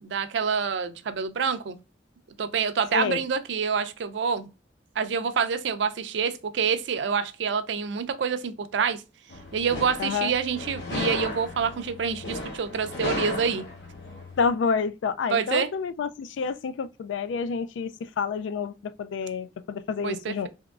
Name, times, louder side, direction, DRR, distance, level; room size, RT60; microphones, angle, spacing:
voice 1, 0.0-1.8 2.4-4.5 5.0-9.0 9.5-13.6 15.3-15.7 20.0-20.5, right 6 dB, 70° right, 0.4 m, -27 dB
voice 2, 2.9-3.2 10.0-10.3 14.4-20.5, left 5 dB, 80° left, 0.3 m, -29 dB
sound 1, 9.3-14.5, left 2 dB, 65° left, 0.7 m, -35 dB
3.5 x 2.9 x 2.3 m
head